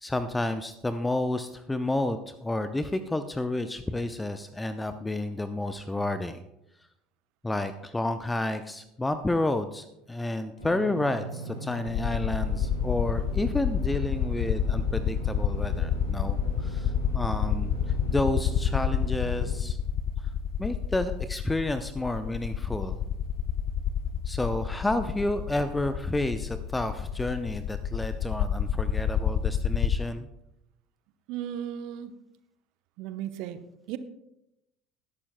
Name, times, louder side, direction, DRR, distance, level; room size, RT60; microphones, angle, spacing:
voice 1, 0.0-6.4 7.4-17.8 18.1-19.8 20.6-23.0 24.3-30.3, left 2 dB, 10° left, 10 dB, 0.6 m, -30 dB
Engine / Mechanisms, 10.6-19.5, right 3 dB, 85° left, 3.6 m, -39 dB
sound 1, 11.9-30.0, left 8 dB, 50° left, 0.5 m, -29 dB
voice 2, 31.3-32.1 33.0-33.6 33.9-34.0, right 10 dB, 55° right, 11 dB, 0.9 m, -35 dB
20.5 x 11.5 x 2.2 m, 0.85 s
figure-of-eight pair, 65°, 0 cm